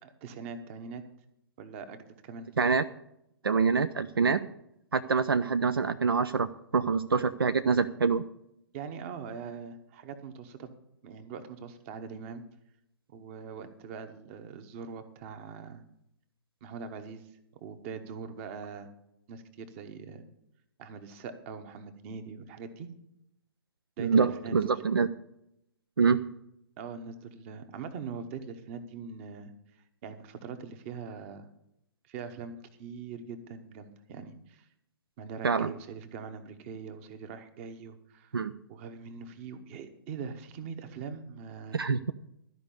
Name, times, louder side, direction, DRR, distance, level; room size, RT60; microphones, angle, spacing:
voice 1, 0.0-1.0 1.6-2.5 8.7-10.7 11.0-12.4 13.1-15.8 16.6-18.9 19.3-20.3 20.8-22.9 24.0-24.7 26.8-29.5 30.0-31.5 32.0-34.7 35.2-38.3 38.7-41.8, right 5 dB, 35° right, 9 dB, 1.2 m, -42 dB
voice 2, 3.4-4.5 4.9-8.2 24.0-25.1 26.0-26.3 35.4-35.7 38.3-38.5 41.7-42.1, right 5 dB, 70° right, 11 dB, 0.5 m, -26 dB
13.0 x 5.2 x 8.4 m, 0.78 s
figure-of-eight pair, 120°, 13 cm